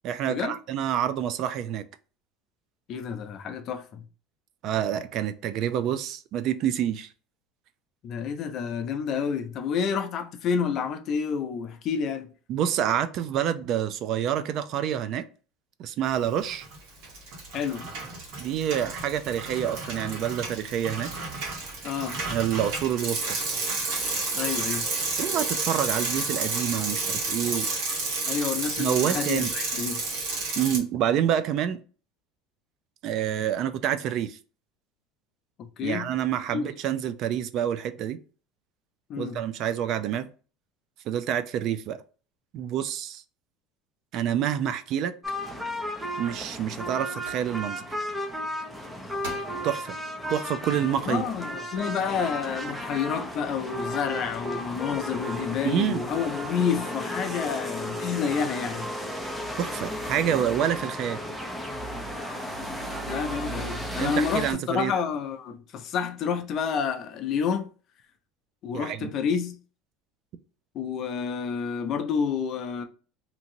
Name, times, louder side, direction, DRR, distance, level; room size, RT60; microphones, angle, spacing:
voice 1, 0.0-1.8 4.6-7.1 12.5-15.2 15.8-16.7 18.4-21.1 22.3-23.4 25.2-27.7 28.8-29.5 30.6-31.8 33.0-34.4 35.8-38.2 39.2-40.3 41.1-42.0 42.5-43.2 44.1-45.1 46.2-47.8 49.6-50.0 50.3-51.2 55.6-56.0 59.6-61.2 64.0-64.9 68.7-69.1, right 10 dB, 50° right, 0.4 m, -27 dB
voice 2, 2.9-4.0 8.0-12.3 17.5-17.9 21.8-22.2 24.3-24.9 28.3-30.0 35.6-36.1 36.5-36.7 39.1-39.4 51.1-58.9 63.0-67.7 68.6-69.6 70.7-72.8, left 6 dB, 45° left, 0.5 m, -29 dB
Bicycle, 16.4-16.8 17.0-30.8, right 3 dB, 65° right, 1.4 m, -31 dB
sound 1, 45.2-64.5, equal, 5° right, 0.6 m, -34 dB
sound 2, 45.9-46.0 46.6-46.9 47.3-47.5 48.7-48.8 49.2-49.7 50.2-50.3, right 2 dB, 85° right, 1.6 m, -41 dB
2.9 x 2.6 x 2.7 m
supercardioid pair, 135°, 0 cm